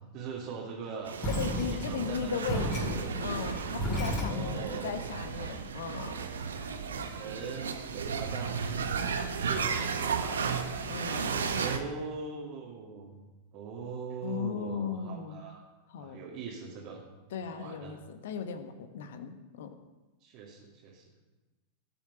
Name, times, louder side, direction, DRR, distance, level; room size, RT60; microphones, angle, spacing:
voice 1, 0.1-1.1 1.6-3.2 4.1-5.2 7.1-8.7 9.4-10.5 11.5-13.2 13.5-15.6 16.0-17.0 17.5-17.9 20.2-21.0, right 5 dB, 40° right, -4 dB, 2.5 m, -41 dB
sound 1, 1.1-11.8, right 5 dB, 70° right, 1.1 m, -34 dB
voice 2, 1.2-6.2 10.9-11.4 14.2-15.4 15.9-16.2 17.3-19.8, left 7 dB, 60° left, 9 dB, 1.3 m, -37 dB
sound 2, 1.2-4.7, equal, 30° left, 5.3 m, -34 dB
19.0 x 7.1 x 5.7 m, 1.2 s
figure-of-eight pair, 90°, 0 cm